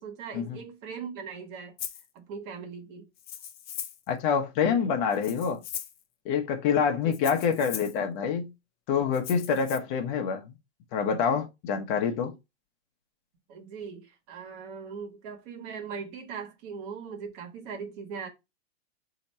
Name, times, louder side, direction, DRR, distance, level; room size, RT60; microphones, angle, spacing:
voice 1, 0.0-1.8 2.1-3.1 7.0-7.1 13.5-18.3, right 6 dB, 50° right, 1.4 m, -40 dB
Rattle (instrument), 1.8-2.1 3.2-4.1 5.1-6.0 7.1-8.0 9.1-9.8, left 10 dB, 30° left, 0.5 m, -39 dB
voice 2, 4.1-5.6 6.2-8.5 8.9-10.5 10.9-12.4, left 6 dB, 50° left, 0.9 m, -26 dB
4.2 x 2.9 x 4.2 m
hypercardioid pair, 120°, 34 cm